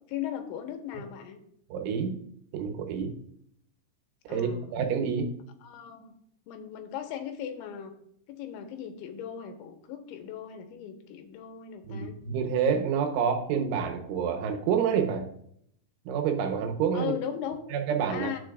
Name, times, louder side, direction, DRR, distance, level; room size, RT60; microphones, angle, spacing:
voice 1, 0.1-1.4 4.3-4.7 5.6-6.1 6.5-7.9 8.3-12.2 13.1-13.2 16.9-17.6 18.1-18.4, left 9 dB, 85° left, 5 dB, 3.4 m, -37 dB
voice 2, 1.7-2.2 2.5-3.1 4.3-5.3 11.9-15.3 16.1-17.1 17.7-18.3, right 7 dB, 90° right, 5 dB, 3.6 m, -28 dB
18.5 x 7.5 x 2.5 m, 0.70 s
omnidirectional pair, 5.3 m